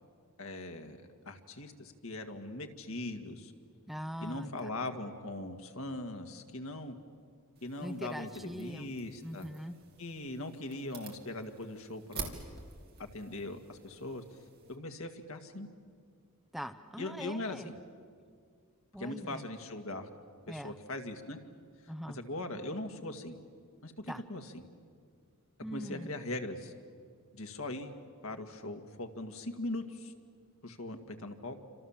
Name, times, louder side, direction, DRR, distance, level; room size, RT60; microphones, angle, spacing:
voice 1, 0.4-1.0 1.3-3.5 4.2-7.0 7.6-9.5 10.0-12.3 13.0-14.2 14.7-15.7 17.0-17.7 19.0-20.1 20.5-21.4 21.8-23.4 23.8-24.6 25.7-26.7 27.3-27.9 28.2-30.1 30.6-31.6, left 2 dB, 70° left, 5 dB, 2.0 m, -40 dB
voice 2, 3.9-4.7 7.8-8.9 9.2-9.8 16.5-17.7 18.9-19.4 20.5-20.8 21.9-22.2 24.1-24.2 25.6-26.1, equal, ahead, 9 dB, 0.7 m, -42 dB
sound 1, 7.6-14.8, right 5 dB, 45° right, 3.2 m, -49 dB
29.0 x 26.5 x 7.3 m, 2.1 s
head